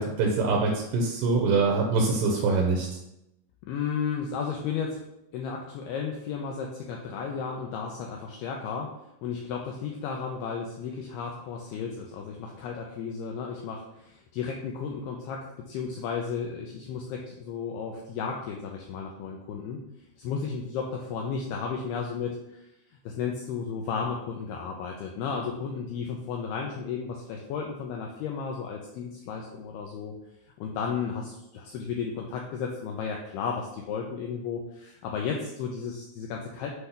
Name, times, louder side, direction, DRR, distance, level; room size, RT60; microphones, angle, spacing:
voice 1, 0.0-2.9, right 3 dB, 75° right, 0 dB, 2.8 m, -24 dB
voice 2, 3.6-5.0 5.3-8.9 9.2-19.8 20.2-22.6 23.1-30.1 30.6-36.7, left 6 dB, 85° left, 0 dB, 2.3 m, -33 dB
8.1 x 3.4 x 5.7 m, 0.86 s
omnidirectional pair, 5.3 m